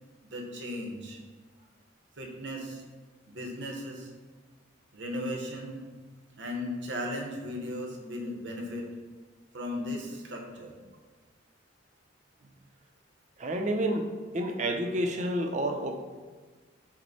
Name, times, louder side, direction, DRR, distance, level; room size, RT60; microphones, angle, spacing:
voice 1, 0.3-1.2 2.2-2.8 3.3-4.1 4.9-5.8 6.4-8.9 9.5-10.7, left 1 dB, 65° right, 0 dB, 0.8 m, -36 dB
voice 2, 13.4-16.0, right 1 dB, 40° right, 4 dB, 0.4 m, -29 dB
6.1 x 2.1 x 4.0 m, 1.4 s
head